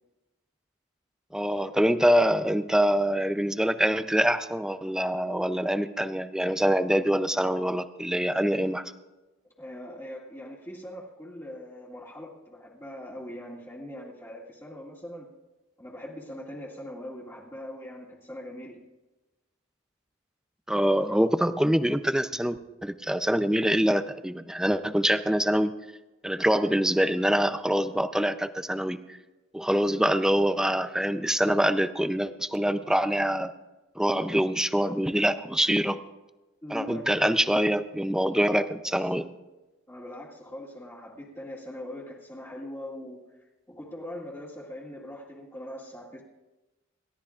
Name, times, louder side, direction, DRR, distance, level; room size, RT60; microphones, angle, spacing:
voice 1, 1.3-8.8 20.7-25.7 26.2-29.2 29.5-33.5 34.0-36.0 36.7-39.3, equal, 5° right, 10 dB, 0.5 m, -25 dB
voice 2, 9.6-15.3 15.8-18.8 36.6-37.0 39.9-43.2 43.7-46.2, left 1 dB, 15° left, -6 dB, 2.0 m, -41 dB
28.0 x 13.0 x 2.5 m, 1.1 s
head